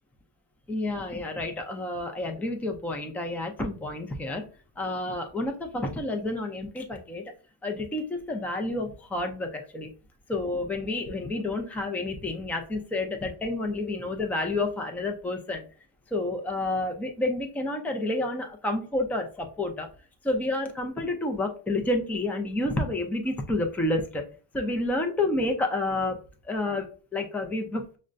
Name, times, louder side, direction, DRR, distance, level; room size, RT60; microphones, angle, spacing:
voice 1, 0.7-4.5 4.8-7.2 7.6-9.9 10.3-15.6 16.1-19.9 20.2-24.2 24.5-26.2 26.4-28.0, left 2 dB, 5° left, 4 dB, 0.4 m, -29 dB
6.3 x 2.1 x 2.5 m, 0.38 s
cardioid pair, 135°, 40 cm